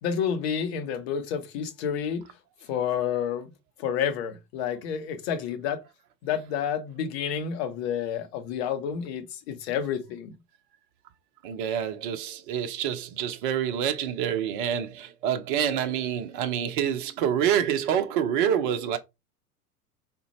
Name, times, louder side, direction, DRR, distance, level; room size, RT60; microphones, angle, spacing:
voice 1, 0.0-2.2 2.7-3.5 3.8-5.8 6.2-10.3, left 8 dB, 45° left, 0.8 m, -29 dB
voice 2, 11.4-19.0, right 9 dB, 35° right, 0.4 m, -27 dB
3.7 x 2.2 x 2.8 m
figure-of-eight pair, 90°, 45 cm